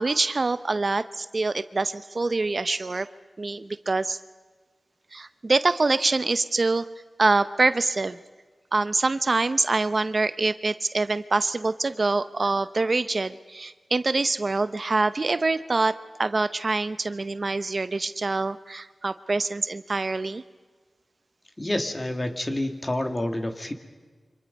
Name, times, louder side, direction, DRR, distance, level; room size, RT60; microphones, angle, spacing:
voice 1, 0.0-3.1 3.4-4.2 5.1-6.8 7.2-8.2 8.7-15.9 16.2-20.4, right 3 dB, 45° right, 13 dB, 0.7 m, -25 dB
voice 2, 21.6-23.7, left 1 dB, 25° left, 6 dB, 2.4 m, -28 dB
28.5 x 26.0 x 5.4 m, 1.4 s
wide cardioid pair, 90°, 0 cm